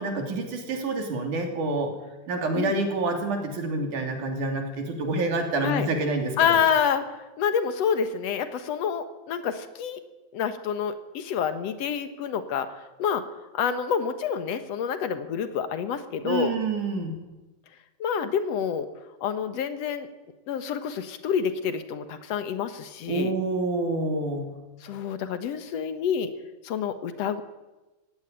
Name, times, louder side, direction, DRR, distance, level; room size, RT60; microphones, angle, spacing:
voice 1, 0.0-1.9 2.3-6.6 16.2-17.2 23.1-24.5, right 2 dB, 80° right, 4 dB, 4.5 m, -27 dB
voice 2, 6.4-7.1 7.4-10.0 10.3-13.2 13.5-16.5 18.0-18.9 19.2-20.1 20.5-23.3 24.8-26.3 26.6-27.4, left 7 dB, 60° left, 10 dB, 2.3 m, -27 dB
16.5 x 16.5 x 10.0 m, 1.1 s
omnidirectional pair, 3.5 m